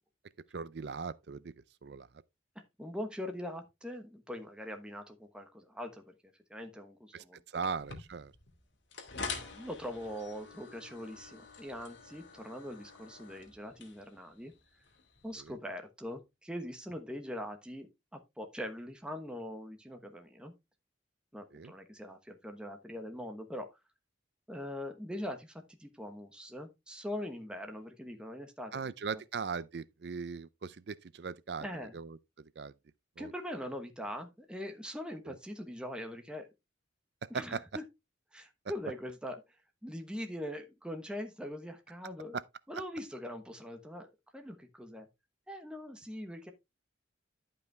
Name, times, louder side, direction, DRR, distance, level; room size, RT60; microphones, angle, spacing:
voice 1, 0.5-1.5 1.8-2.1 7.1-7.2 7.5-8.3 15.4-15.5 21.5-21.7 28.7-31.7 31.9-32.2 32.6-32.7 33.2-33.3 35.3-35.4 37.3-37.6 42.3-42.4, right 5 dB, 60° right, 0.4 m, -39 dB
voice 2, 2.8-6.1 6.5-7.7 9.5-14.5 15.2-20.5 21.3-23.7 24.5-29.2 31.6-32.0 33.2-36.5 37.3-37.8 38.3-39.4 39.8-42.4 42.7-44.1 44.3-45.1 45.5-46.5, left 1 dB, 5° right, 1.2 m, -42 dB
sound 1, 7.6-15.5, left 4 dB, 75° left, 2.2 m, -47 dB
11.5 x 5.5 x 3.4 m
head